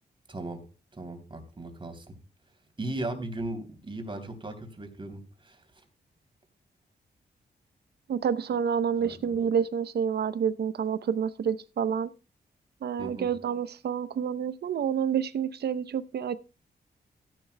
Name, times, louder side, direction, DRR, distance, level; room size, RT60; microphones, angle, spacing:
voice 1, 0.3-0.6 1.0-2.0 2.8-5.6 9.0-9.2 13.0-13.3, right 2 dB, 30° right, 3.1 m, -37 dB
voice 2, 8.1-12.1 12.8-16.3, right 7 dB, 75° right, 0.7 m, -28 dB
16.0 x 11.0 x 2.2 m
cardioid pair, 90°, 17 cm